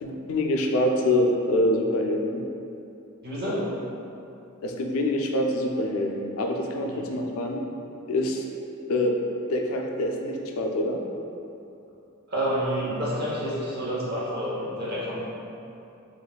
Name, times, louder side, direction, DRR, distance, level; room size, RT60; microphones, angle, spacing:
voice 1, 0.0-2.4 4.6-7.6 8.1-8.4 8.9-9.1 9.5-11.0, left 1 dB, 75° left, 1 dB, 0.4 m, -25 dB
voice 2, 3.2-3.6 6.9-7.1 12.3-15.3, equal, 50° right, -7 dB, 0.8 m, -29 dB
4.0 x 2.9 x 2.3 m, 2.8 s
head